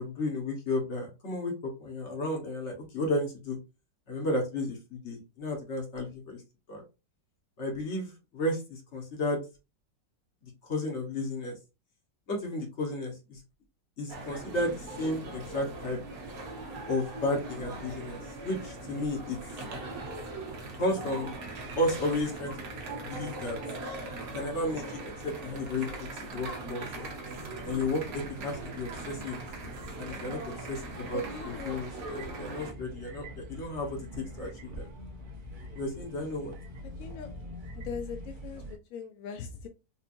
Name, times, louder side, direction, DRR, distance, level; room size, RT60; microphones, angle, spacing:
voice 1, 0.0-1.5 1.8-3.6 4.1-6.4 6.7-6.8 7.6-9.4 10.4-11.5 12.3-13.4 14.0-16.0 16.9-19.4 20.8-21.3 21.8-22.5 23.0-23.6 24.3-27.1 27.6-29.4 30.0-30.4 30.7-34.9 35.7-36.5, left 1 dB, 45° left, 0 dB, 1.4 m, -33 dB
sound 1, 14.1-32.7, right 2 dB, 60° right, 1.2 m, -40 dB
sound 2, 27.3-38.8, equal, 45° right, 0.6 m, -45 dB
voice 2, 31.1-31.8 37.0-37.3 37.7-39.7, left 6 dB, 75° left, 6 dB, 0.7 m, -40 dB
4.4 x 2.7 x 2.5 m, 0.28 s
omnidirectional pair, 1.9 m